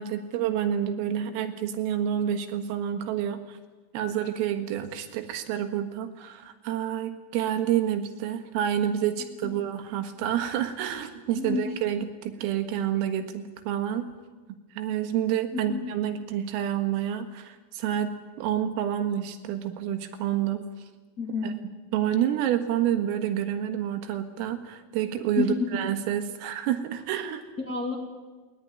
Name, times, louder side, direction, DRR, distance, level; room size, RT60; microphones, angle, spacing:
voice 1, 0.0-3.6 3.9-14.0 14.8-20.6 21.4-21.5 21.9-27.4, right 10 dB, 85° right, 8 dB, 4.3 m, -28 dB
voice 2, 11.4-11.7 15.5-15.8 21.2-21.6 25.4-25.7 27.6-27.9, left 4 dB, 30° left, 0 dB, 1.8 m, -29 dB
20.5 x 19.5 x 9.7 m, 1.3 s
omnidirectional pair, 5.9 m